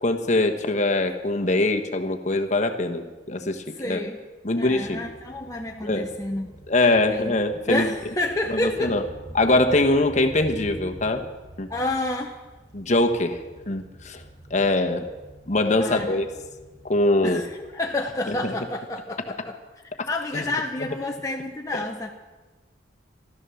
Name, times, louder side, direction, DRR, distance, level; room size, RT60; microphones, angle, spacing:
voice 1, 0.0-4.0 4.4-5.0 5.8-6.1 6.7-7.9 8.5-9.0 9.3-11.2 11.6-11.7 12.7-13.4 13.7-14.2 14.5-15.1 15.5-16.3 16.8-17.4 18.3-18.5 20.0-20.1 20.3-20.4, left 2 dB, 40° left, 5 dB, 1.3 m, -23 dB
voice 2, 3.8-4.2 4.6-6.5 7.1-7.3 7.7-9.0 11.7-12.4 15.8-16.2 17.2-19.6 20.1-22.1, left 2 dB, 15° left, 1 dB, 0.9 m, -29 dB
sound 1, 4.6-18.5, right 1 dB, 20° right, 2.5 m, -46 dB
15.0 x 13.0 x 7.1 m, 1.2 s
head